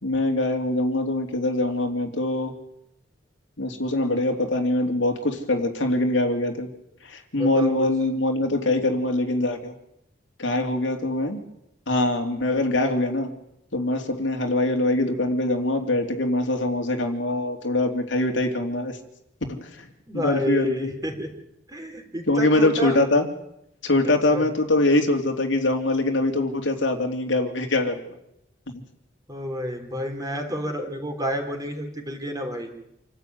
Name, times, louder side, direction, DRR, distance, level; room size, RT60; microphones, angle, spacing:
voice 1, 0.0-2.5 3.6-6.7 7.1-9.7 10.4-11.4 11.9-13.3 13.7-19.0 19.5-19.9 20.1-20.9 22.3-23.3 23.8-28.0, left 2 dB, 75° left, 3 dB, 3.2 m, -23 dB
voice 2, 7.3-7.9 20.1-21.3 21.7-23.0 24.3-24.4 29.3-32.7, equal, 20° right, 3 dB, 4.0 m, -30 dB
27.5 x 14.0 x 9.6 m, 0.81 s
head